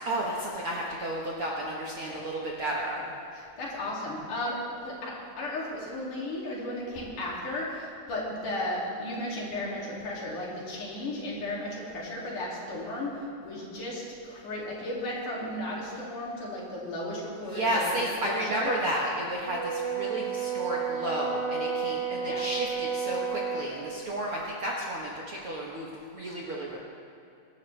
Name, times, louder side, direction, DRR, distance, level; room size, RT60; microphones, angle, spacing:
voice 1, 0.0-3.0 17.4-26.8, right 1 dB, 55° right, -3 dB, 1.6 m, -32 dB
voice 2, 3.3-18.0 18.3-18.7 22.2-22.4, left 1 dB, 65° left, -4 dB, 4.1 m, -35 dB
Brass instrument, 19.5-23.7, right 6 dB, 75° right, 1.3 m, -31 dB
24.0 x 12.5 x 3.3 m, 2.6 s
omnidirectional pair, 4.0 m